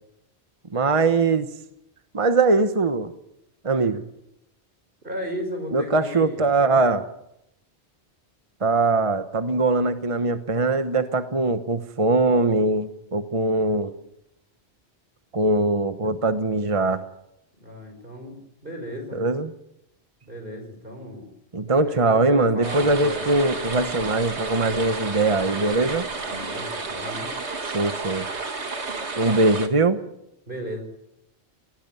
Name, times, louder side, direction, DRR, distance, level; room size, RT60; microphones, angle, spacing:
voice 1, 0.7-1.5 2.1-3.1 3.6-4.0 5.7-7.0 8.6-13.9 15.3-17.0 19.1-19.5 21.5-26.1 27.7-28.2 29.2-30.0, right 3 dB, 30° right, 9 dB, 1.1 m, -21 dB
voice 2, 5.0-6.5 17.6-19.2 20.3-21.3 21.8-23.4 24.6-25.0 25.6-26.0 26.3-27.3 30.5-30.8, equal, 50° right, 5 dB, 5.3 m, -35 dB
sound 1, 22.6-29.7, right 3 dB, 85° right, 2.2 m, -31 dB
19.5 x 18.5 x 9.2 m, 0.82 s
omnidirectional pair, 1.1 m